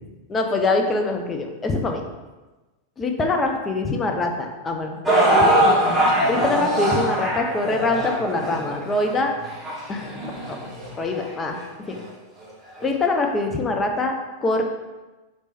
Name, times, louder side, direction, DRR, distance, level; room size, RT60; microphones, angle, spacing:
voice 1, 0.3-2.0 3.0-5.0 5.3-5.8 6.3-9.3 9.9-10.1 10.5-10.6 11.0-11.6 11.9-12.0 12.8-14.6, left 2 dB, 20° left, 3 dB, 0.5 m, -24 dB
sound 1, 5.1-11.3 12.0-12.1 12.8-12.9, right 1 dB, 10° right, 1.0 m, -22 dB
3.3 x 3.0 x 4.1 m, 1.2 s
figure-of-eight pair, 90°, 0 cm